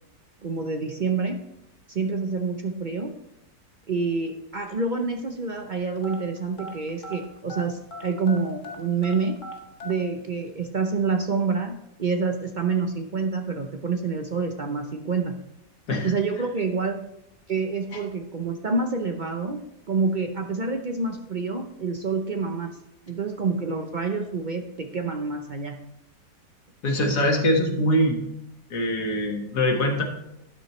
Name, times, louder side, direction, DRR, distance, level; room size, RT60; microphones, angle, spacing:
voice 1, 0.4-1.4 1.9-3.1 3.9-9.4 9.8-15.4 16.0-17.0 17.5-19.6 19.9-22.8 23.1-25.8, right 4 dB, 60° right, 4 dB, 0.5 m, -27 dB
sound 1, 6.0-7.7 7.9-10.0, equal, 45° left, 1.9 m, -38 dB
voice 2, 26.8-28.2 28.7-30.0, left 1 dB, 65° left, 2 dB, 2.3 m, -23 dB
12.5 x 10.0 x 3.2 m, 0.82 s
omnidirectional pair, 1.8 m